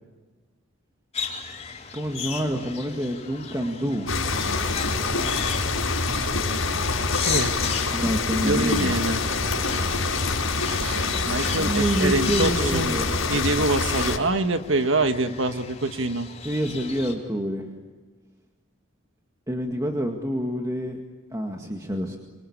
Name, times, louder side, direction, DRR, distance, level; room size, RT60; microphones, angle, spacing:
sound 1, 1.1-17.1, left 6 dB, 30° left, 4.5 m, -36 dB
voice 1, 1.9-4.1 7.9-9.0 11.6-13.1 15.3-15.4 16.4-17.7 19.5-21.0 21.3-22.2, equal, 15° right, 2 dB, 1.9 m, -27 dB
sound 2, 4.1-14.2, left 3 dB, 90° left, 5.3 m, -25 dB
voice 2, 7.2-7.7 8.4-9.2 10.7-13.0 13.3-16.3, right 2 dB, 70° right, 8 dB, 1.6 m, -25 dB
26.0 x 25.5 x 8.8 m, 1.3 s
head